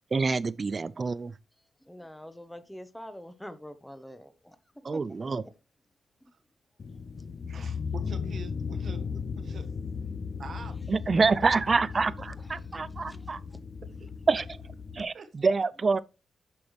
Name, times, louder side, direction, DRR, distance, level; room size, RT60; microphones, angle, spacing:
voice 1, 0.1-1.3 4.8-5.4 10.9-13.4 14.3-14.4 14.9-16.0, right 4 dB, 40° right, 0.4 m, -26 dB
voice 2, 1.8-5.0 5.4-5.5 6.2-6.3 7.4-7.5 12.5-13.6, equal, 5° left, 0.9 m, -46 dB
sound 1, 6.8-15.0, left 6 dB, 55° left, 0.8 m, -36 dB
voice 3, 7.5-9.7 10.4-10.8 14.0-14.1 15.1-15.3, right 5 dB, 60° right, 1.1 m, -45 dB
8.5 x 6.1 x 3.1 m
cardioid pair, 70°, 0 cm